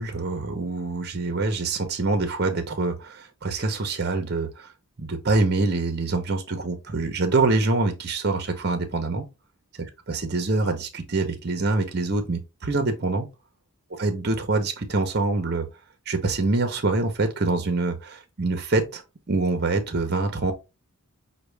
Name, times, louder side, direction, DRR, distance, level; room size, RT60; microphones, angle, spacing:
voice 1, 0.0-4.7 5.0-9.2 9.8-13.3 14.0-15.7 16.1-19.0 19.3-20.5, right 3 dB, 45° right, 0.8 m, -25 dB
5.9 x 2.3 x 3.3 m
head